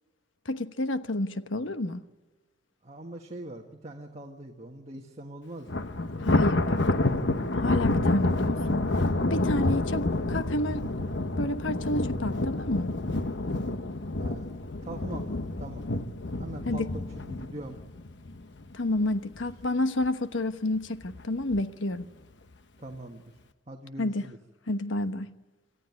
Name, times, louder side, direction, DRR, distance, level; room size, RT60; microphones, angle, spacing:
voice 1, 0.4-2.0 6.2-6.8 7.6-8.8 9.2-10.9 11.4-12.9 16.7-16.9 18.7-22.1 24.0-24.3 24.7-25.3, left 1 dB, 90° left, 1.2 m, -30 dB
voice 2, 2.8-5.8 9.9-10.0 14.2-14.5 14.8-15.3 15.5-15.8 16.3-16.9 17.2-17.8 22.8-23.2 23.7-24.4, right 1 dB, 35° right, 1.6 m, -42 dB
Thunder, 5.7-19.0 19.4-19.7 20.0-20.1 21.0-21.6, left 2 dB, 65° left, 1.0 m, -28 dB
27.5 x 14.0 x 9.6 m
head